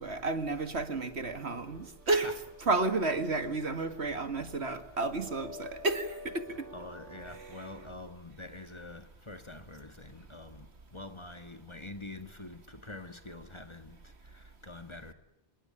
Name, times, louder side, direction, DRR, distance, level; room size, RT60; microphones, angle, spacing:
voice 1, 0.0-6.5, right 3 dB, 70° right, 2.2 m, -31 dB
sound 1, 1.2-8.1, left 1 dB, 85° right, 2.6 m, -51 dB
voice 2, 6.7-15.1, left 2 dB, 25° left, 1.8 m, -46 dB
27.5 x 20.5 x 9.9 m
omnidirectional pair, 1.2 m